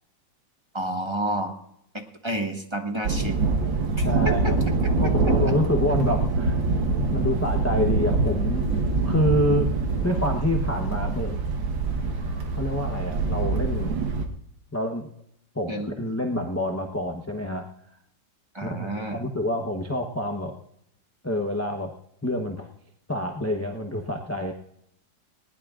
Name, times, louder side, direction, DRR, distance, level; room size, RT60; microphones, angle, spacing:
voice 1, 0.7-1.6 1.9-3.4 4.0-4.5 5.2-5.3 15.7-16.0 18.5-19.2, right 1 dB, 15° right, 3 dB, 1.2 m, -30 dB
Thunder, 3.1-14.3, right 3 dB, 80° right, 2.1 m, -24 dB
voice 2, 4.0-4.6 5.0-6.5 7.1-8.7 9.0-9.8 10.0-11.4 12.6-14.0 14.7-15.1 15.5-17.7 18.6-20.6 21.2-22.0 22.2-22.7 23.1-24.5, left 1 dB, 15° left, 2 dB, 0.5 m, -27 dB
20.0 x 18.5 x 2.5 m, 0.76 s
omnidirectional pair, 2.1 m